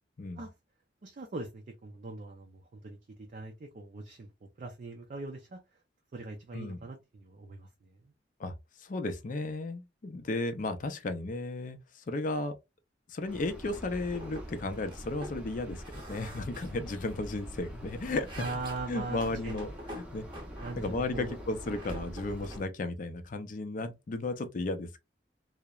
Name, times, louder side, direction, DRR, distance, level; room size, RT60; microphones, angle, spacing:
voice 1, 1.0-5.6 6.1-8.1 18.4-19.7 20.6-21.4, right 3 dB, 45° right, 0.4 m, -41 dB
voice 2, 8.4-12.5 13.1-18.4 18.9-20.3 20.8-25.0, left 2 dB, 45° left, 0.5 m, -34 dB
sound 1, 13.3-22.6, equal, 5° right, 0.6 m, -45 dB
sound 2, 13.7-13.8 14.1-14.5 14.7-15.4 15.8-17.4 17.8-20.8 21.2-22.7, equal, 25° right, 0.9 m, -46 dB
2.8 x 2.0 x 2.3 m
head